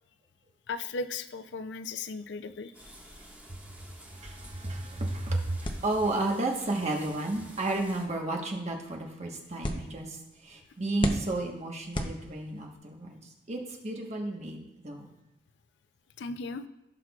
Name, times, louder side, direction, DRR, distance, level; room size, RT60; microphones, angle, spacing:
voice 1, 0.7-2.7 16.2-16.7, left 4 dB, 70° left, 11 dB, 0.4 m, -36 dB
sound 1, 2.7-8.0, right 1 dB, 10° right, 1.6 m, -51 dB
voice 2, 4.1-15.1, right 2 dB, 40° right, 1 dB, 1.2 m, -32 dB
sound 2, 5.6-12.8, left 1 dB, 30° left, 0.7 m, -39 dB
15.5 x 5.9 x 2.4 m, 0.99 s
head